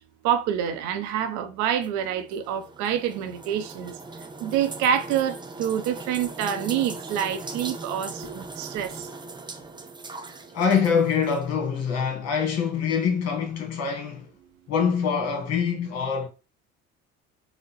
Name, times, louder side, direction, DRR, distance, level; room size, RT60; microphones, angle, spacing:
voice 1, 0.2-3.9 4.4-9.1, right 9 dB, 75° right, 0.8 m, -27 dB
sound 1, 1.8-11.4, right 3 dB, 15° right, 0.7 m, -39 dB
voice 2, 10.5-14.3 14.7-16.3, left 6 dB, 55° left, 1.5 m, -24 dB
3.9 x 2.2 x 4.1 m
supercardioid pair, 75°, 30 cm